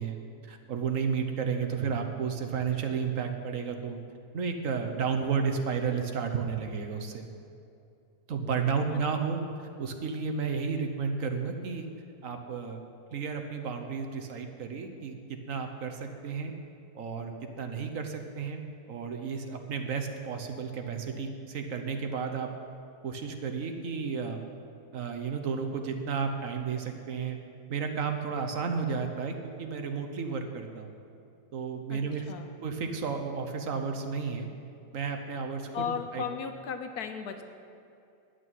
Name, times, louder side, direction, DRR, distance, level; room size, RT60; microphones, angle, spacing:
voice 1, 0.0-4.0 4.3-7.2 8.3-9.4 9.8-11.9 12.2-12.8 13.1-16.5 16.9-18.6 18.9-22.5 23.0-24.4 24.9-27.4 27.7-30.9 31.5-32.2 32.6-34.5 34.9-36.2, right 6 dB, 55° right, 5 dB, 1.2 m, -32 dB
voice 2, 35.7-37.4, left 7 dB, 70° left, 7 dB, 1.3 m, -35 dB
10.5 x 6.3 x 9.2 m, 2.6 s
omnidirectional pair, 1.8 m